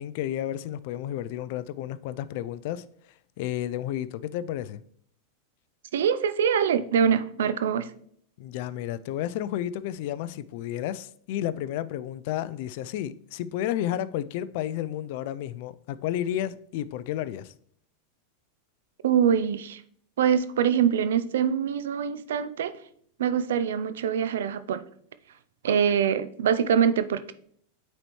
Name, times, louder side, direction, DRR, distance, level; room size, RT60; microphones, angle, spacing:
voice 1, 0.0-2.8 3.4-4.8 8.4-17.5, left 12 dB, 60° left, 0.4 m, -32 dB
voice 2, 5.9-7.9 19.0-19.8 20.2-22.8 23.2-24.8 25.6-27.3, right 8 dB, 80° right, 0.5 m, -24 dB
8.7 x 4.2 x 3.1 m
hypercardioid pair, 110°, 0 cm